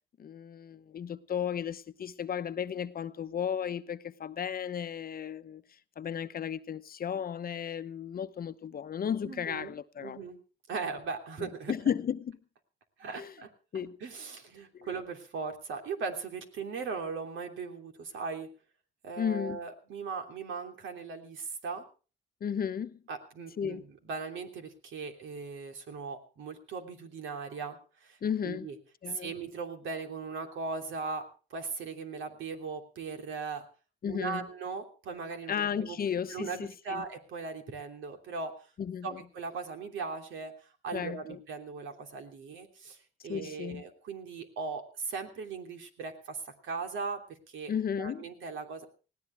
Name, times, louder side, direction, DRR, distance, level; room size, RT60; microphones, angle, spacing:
voice 1, 0.2-5.6 6.0-10.2 11.4-12.3 13.1-13.3 13.7-14.0 14.7-14.9 19.2-19.6 22.4-23.0 23.6-23.8 28.2-28.7 29.0-29.3 34.0-34.5 35.5-37.0 38.8-39.2 40.9-41.4 43.3-43.8 47.7-48.3, left 8 dB, 50° left, 0.9 m, -34 dB
voice 2, 9.2-10.4 10.7-11.7 13.0-13.5 14.0-18.5 19.0-21.8 23.1-23.8 24.1-28.2 28.4-28.7 29.1-33.6 34.1-36.0 36.3-38.5 39.0-43.0 43.2-47.7 48.0-48.8, right 4 dB, 75° right, 3.2 m, -39 dB
19.5 x 17.0 x 3.4 m
cardioid pair, 90°, 20 cm